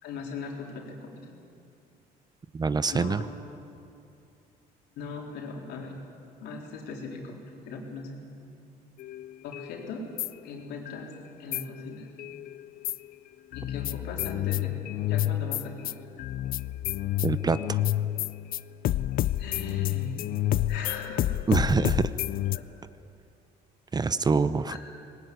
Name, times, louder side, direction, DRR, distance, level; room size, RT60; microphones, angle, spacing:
voice 1, 0.0-1.2 2.9-3.3 5.0-6.0 6.4-7.4 7.6-8.5 9.4-10.0 10.4-11.1 11.4-12.1 13.5-14.7 15.0-16.0 19.4-20.1 20.7-21.3 22.5-22.6 24.7-24.8, left 4 dB, 80° left, 0 dB, 4.1 m, -39 dB
voice 2, 2.5-3.2 17.2-17.8 21.5-22.1 23.9-24.8, right 4 dB, 25° right, 14 dB, 0.6 m, -25 dB
sound 1, 9.0-11.0 11.5-13.1 13.5-22.6, left 14 dB, 60° left, 0.5 m, -30 dB
19.5 x 19.5 x 9.5 m, 2.6 s
cardioid pair, 110°, 17 cm